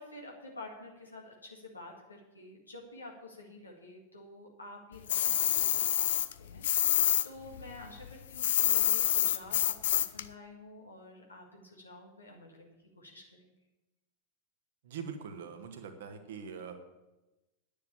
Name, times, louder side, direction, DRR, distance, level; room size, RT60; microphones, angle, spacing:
voice 1, 0.0-13.4, left 2 dB, 80° left, -1 dB, 2.0 m, -50 dB
sound 1, 5.1-7.3 7.5-10.2, left 11 dB, 60° left, 0.5 m, -27 dB
voice 2, 14.8-16.7, right 6 dB, 55° right, 5 dB, 1.4 m, -43 dB
9.6 x 6.9 x 8.7 m, 1.1 s
figure-of-eight pair, 90°, 0 cm